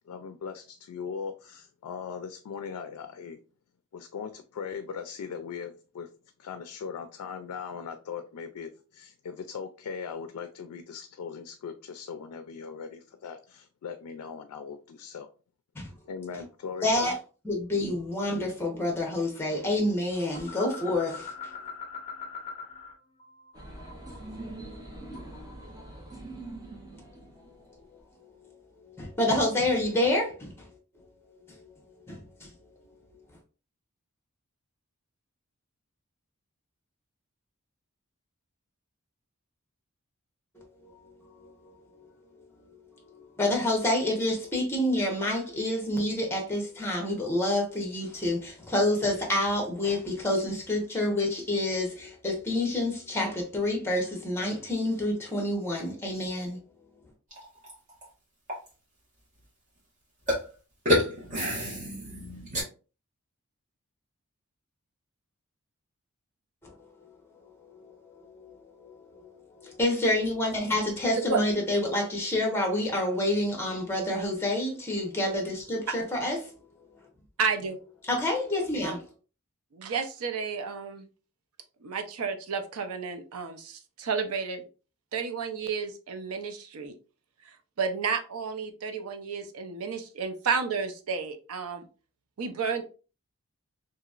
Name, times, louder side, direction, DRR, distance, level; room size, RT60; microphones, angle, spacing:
voice 1, 0.1-3.4 3.9-6.1 6.4-15.3 16.1-17.1, left 6 dB, 90° left, 0.3 m, -39 dB
voice 2, 16.8-17.1 17.4-21.5 28.8-30.7 31.5-31.7 32.1-32.5 40.8-41.0 41.2-42.1 42.7-42.8 43.1-56.6 66.6-67.1 67.4-76.5 78.1-79.1, left 1 dB, 10° left, 0.8 m, -28 dB
sound 1, 20.3-22.9 23.2-25.5, left 5 dB, 30° left, 0.5 m, -42 dB
sound 2, 23.5-28.0, right 2 dB, 15° right, 0.6 m, -43 dB
sound 3, 57.3-58.0 58.5-58.7 60.3-60.4 60.8-62.6, left 1 dB, 35° right, 1.3 m, -28 dB
voice 3, 77.4-77.8 78.8-78.9 79.7-81.1 81.8-84.6 85.1-86.9 87.8-91.8 92.4-92.9, right 5 dB, 75° right, 0.5 m, -31 dB
2.9 x 2.6 x 2.4 m
head